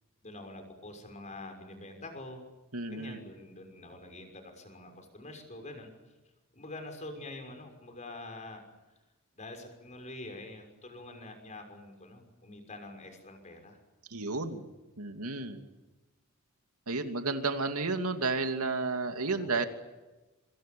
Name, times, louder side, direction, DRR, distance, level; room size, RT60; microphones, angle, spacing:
voice 1, 0.2-2.5 2.9-5.9 6.5-8.6 9.3-13.8 14.3-14.5 19.3-19.6, left 2 dB, 35° left, 6 dB, 6.2 m, -46 dB
voice 2, 2.7-3.2 14.1-14.7 15.0-15.6 16.9-19.7, right 3 dB, 85° right, 6 dB, 2.7 m, -32 dB
26.5 x 26.5 x 7.1 m, 1.1 s
head